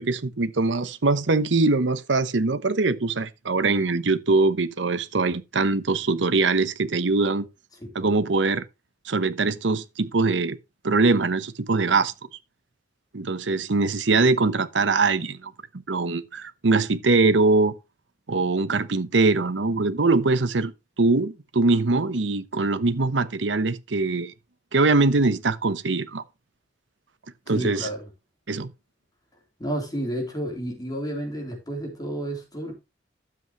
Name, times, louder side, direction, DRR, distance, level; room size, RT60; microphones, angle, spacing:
voice 1, 0.0-7.4 7.9-8.6 9.0-10.6 10.8-12.1 13.1-15.5 15.9-17.7 18.3-20.7 21.0-24.3 24.7-26.2 27.5-27.9 28.5-28.7, right 3 dB, 75° right, 0.9 m, -22 dB
voice 2, 7.8-8.1 27.5-28.1 29.6-32.7, right 1 dB, 20° left, 3.6 m, -31 dB
12.5 x 7.8 x 3.1 m
head